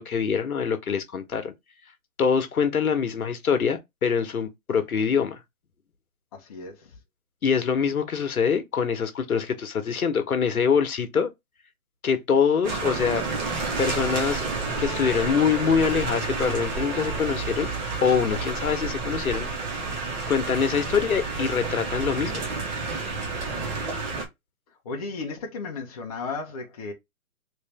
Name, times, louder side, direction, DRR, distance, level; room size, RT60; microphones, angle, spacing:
voice 1, 0.0-1.5 2.2-5.4 7.4-11.3 12.0-13.2 13.8-17.7 18.0-19.5 20.3-22.4, left 6 dB, 85° left, 1.1 m, -24 dB
sound 1, 12.6-24.3, right 4 dB, 30° right, 1.0 m, -30 dB
Bowed string instrument, 12.7-17.8, left 4 dB, 5° right, 0.8 m, -45 dB
voice 2, 24.9-26.9, left 4 dB, 25° left, 0.7 m, -34 dB
3.2 x 2.7 x 3.3 m
hypercardioid pair, 150°, 42 cm